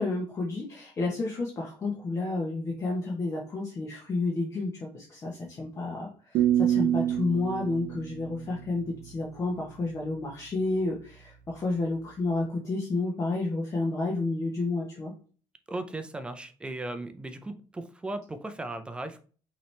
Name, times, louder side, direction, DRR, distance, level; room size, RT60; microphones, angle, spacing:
voice 1, 0.0-15.1, left 3 dB, 30° left, -3 dB, 0.9 m, -30 dB
sound 1, 6.3-9.3, right 11 dB, 60° right, 0.6 m, -27 dB
voice 2, 15.7-19.2, right 2 dB, 10° right, 8 dB, 0.4 m, -37 dB
5.6 x 3.0 x 3.2 m, 0.40 s
cardioid pair, 170°, 10 cm